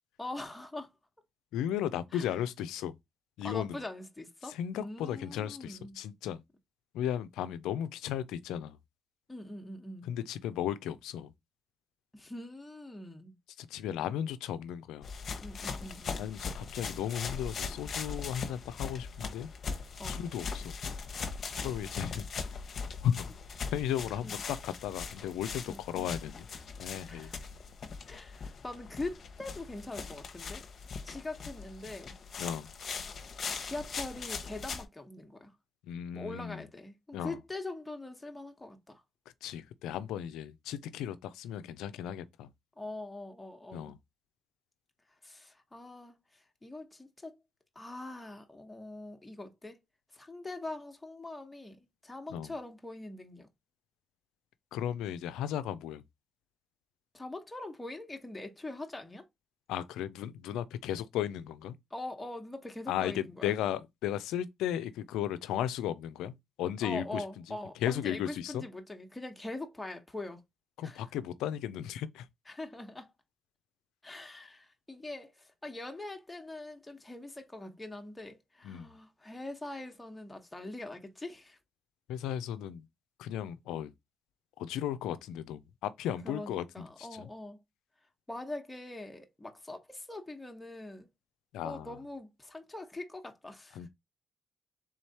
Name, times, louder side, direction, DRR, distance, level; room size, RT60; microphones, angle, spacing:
voice 1, 0.2-0.9 2.1-2.3 3.4-6.0 9.3-10.1 12.1-13.4 15.4-16.3 20.0-20.2 21.5-21.7 24.2-24.4 25.7-26.1 27.1-27.4 28.1-30.6 31.0-32.1 33.6-35.5 36.1-39.0 42.8-43.9 45.2-47.4 47.7-49.8 50.1-53.5 57.1-59.2 61.9-63.6 66.8-70.4 70.8-71.0 72.5-73.1 74.0-81.6 86.2-87.6 88.3-91.1 91.6-93.9, left 2 dB, 15° left, 1.1 m, -43 dB
voice 2, 1.5-3.0 3.4-3.8 4.5-6.4 6.9-8.8 10.0-11.3 13.6-15.1 16.2-19.5 20.1-20.8 21.6-22.2 23.0-23.3 23.7-26.5 26.8-27.3 32.4-32.7 35.8-36.6 37.1-37.4 39.4-42.5 43.7-44.0 52.3-52.5 54.7-56.0 59.7-61.8 62.9-67.6 67.8-68.6 70.8-72.3 78.6-78.9 82.1-82.9 83.2-83.9 84.6-87.3 91.5-92.0 93.8-93.9, left 10 dB, 90° left, 0.4 m, -35 dB
sound 1, 15.0-34.8, left 5 dB, 55° left, 0.9 m, -40 dB
3.6 x 3.1 x 4.1 m
supercardioid pair, 65°, 0 cm